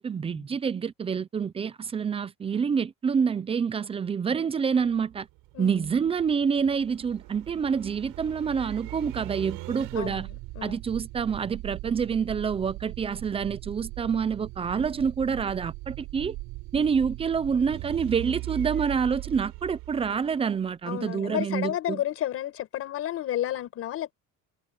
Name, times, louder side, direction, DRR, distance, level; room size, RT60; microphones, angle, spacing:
voice 1, 0.0-5.3 5.6-10.3 10.6-16.4 16.7-22.0, right 6 dB, 20° right, 0.6 m, -27 dB
sound 1, 4.7-20.7, right 21 dB, 90° right, 5.5 m, -40 dB
voice 2, 5.5-5.9 9.9-10.3 10.6-10.8 20.8-24.1, left 12 dB, 45° left, 5.5 m, -31 dB
cardioid pair, 170°, 32 cm